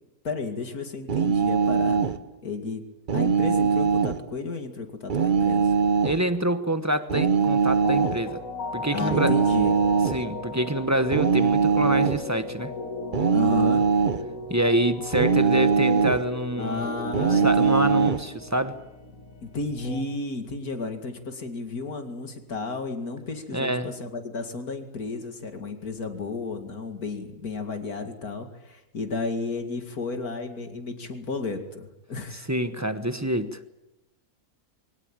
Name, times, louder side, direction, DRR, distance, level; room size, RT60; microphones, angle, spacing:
voice 1, 0.2-2.1 2.4-2.9 3.1-5.7 8.9-9.8 13.3-13.9 16.6-18.1 19.4-32.5, left 3 dB, 75° left, 2.8 m, -33 dB
sound 1, 1.1-2.2 3.1-4.2 5.1-6.2 7.1-8.2 9.1-10.2 11.1-12.2 13.1-14.3 15.1-16.3 17.1-18.2, right 6 dB, 40° right, 1.0 m, -22 dB
voice 2, 6.0-8.4 8.7-9.4 10.1-12.7 14.5-16.9 17.1-18.8 23.5-23.9 32.5-33.6, right 1 dB, 15° right, 0.9 m, -26 dB
sound 2, 7.8-20.0, left 2 dB, 60° left, 2.3 m, -36 dB
23.0 x 18.5 x 8.9 m
omnidirectional pair, 1.6 m